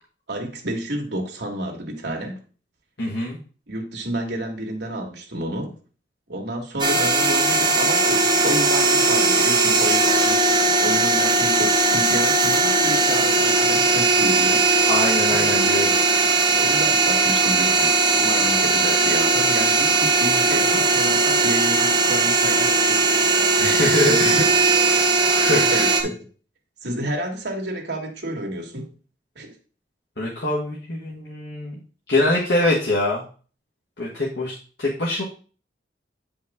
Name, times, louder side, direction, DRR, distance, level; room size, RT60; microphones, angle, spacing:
voice 1, 0.3-2.4 3.7-5.8 6.3-14.7 15.2-15.6 16.5-23.0 23.6-24.5 25.5-26.2 26.8-28.9 29.4-29.5, right 1 dB, 65° right, 1 dB, 1.8 m, -30 dB
voice 2, 3.0-3.4 14.9-16.0 23.5-24.4 24.9-25.9 30.2-31.7 32.1-33.2 34.0-35.2, left 1 dB, 65° left, -4 dB, 1.5 m, -24 dB
sound 1, 6.8-26.0, right 3 dB, 25° right, 1.0 m, -19 dB
8.1 x 5.2 x 3.6 m, 0.39 s
head